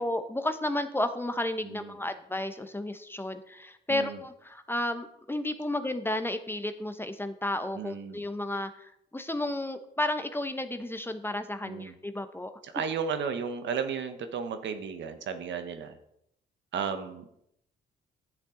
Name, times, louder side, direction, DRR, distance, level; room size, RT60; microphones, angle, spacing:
voice 1, 0.0-12.5, left 1 dB, 10° left, 9 dB, 0.7 m, -32 dB
voice 2, 7.8-8.2 11.6-11.9 12.7-15.9 16.7-17.5, right 6 dB, 65° right, 8 dB, 1.0 m, -34 dB
11.0 x 7.4 x 3.8 m, 0.77 s
cardioid pair, 90°, 20 cm